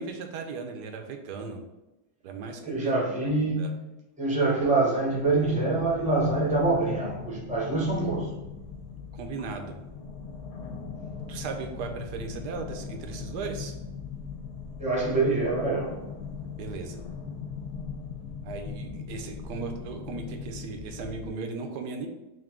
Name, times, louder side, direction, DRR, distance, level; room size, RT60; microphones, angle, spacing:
voice 1, 0.0-1.6 2.2-2.9 3.2-3.7 9.1-9.8 11.3-13.7 16.6-17.0 18.4-22.1, right 4 dB, 85° right, 1.2 m, -37 dB
voice 2, 2.6-3.8 4.2-8.4 14.8-16.1, right 2 dB, 10° right, 0.4 m, -25 dB
sound 1, 5.1-21.3, left 6 dB, 75° left, 1.2 m, -39 dB
3.7 x 2.6 x 3.5 m
omnidirectional pair, 1.7 m